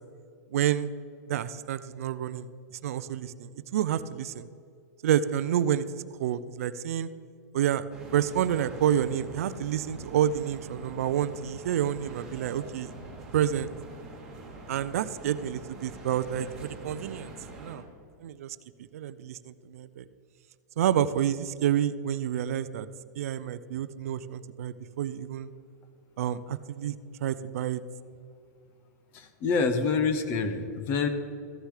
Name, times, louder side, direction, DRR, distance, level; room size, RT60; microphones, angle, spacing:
voice 1, 0.5-0.9 1.3-2.5 2.8-4.5 5.0-5.9 6.2-7.1 7.5-7.8 8.1-12.9 13.3-13.7 14.7-17.8 18.2-20.0 20.8-22.9 23.2-25.5 26.2-27.0 27.2-27.8, right 10 dB, 55° right, 15 dB, 0.4 m, -29 dB
sound 1, 7.9-17.8, right 2 dB, 5° right, 2.6 m, -45 dB
voice 2, 29.1-31.1, left 4 dB, 20° left, 9 dB, 0.6 m, -27 dB
14.5 x 6.5 x 4.9 m, 2.4 s
supercardioid pair, 175°, 10 cm